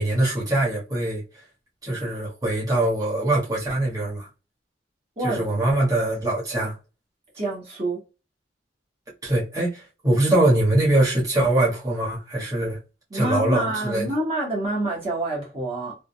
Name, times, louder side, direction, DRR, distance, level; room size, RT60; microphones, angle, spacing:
voice 1, 0.0-1.4 1.8-4.3 5.2-6.8 9.2-12.8 13.1-14.1, right 1 dB, 20° right, 1.4 m, -23 dB
voice 2, 5.2-5.5 7.3-8.0 13.1-16.0, right 1 dB, 35° right, 1.3 m, -27 dB
3.7 x 2.5 x 2.2 m
head